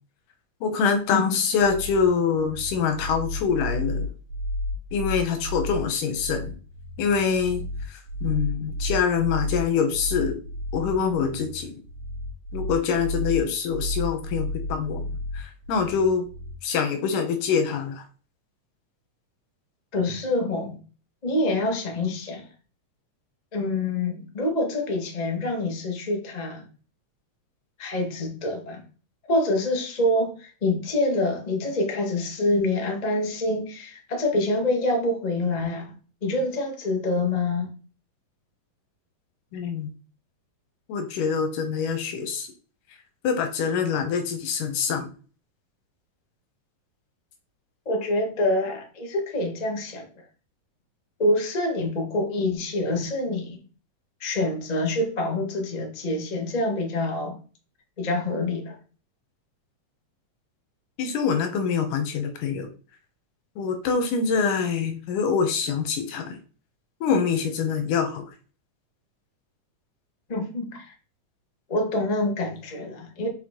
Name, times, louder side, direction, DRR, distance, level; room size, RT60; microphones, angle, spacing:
voice 1, 0.6-4.1 4.9-6.5 7.0-7.6 8.2-10.4 10.7-11.7 12.5-15.1 15.3-16.3 16.6-18.0 39.5-39.9 40.9-42.5 43.2-45.1 61.0-62.7 63.6-66.4 67.0-68.2, left 6 dB, 80° left, 2.6 m, -25 dB
sound 1, 1.6-16.6, left 1 dB, 90° right, 3.1 m, -32 dB
voice 2, 19.9-20.8 21.2-22.4 23.5-26.7 27.8-28.8 29.3-35.9 36.2-37.7 47.8-50.2 51.2-53.6 54.2-57.3 58.0-58.7 70.3-70.9 71.7-73.3, left 2 dB, 60° left, 0.4 m, -26 dB
5.8 x 4.9 x 3.7 m
omnidirectional pair, 3.6 m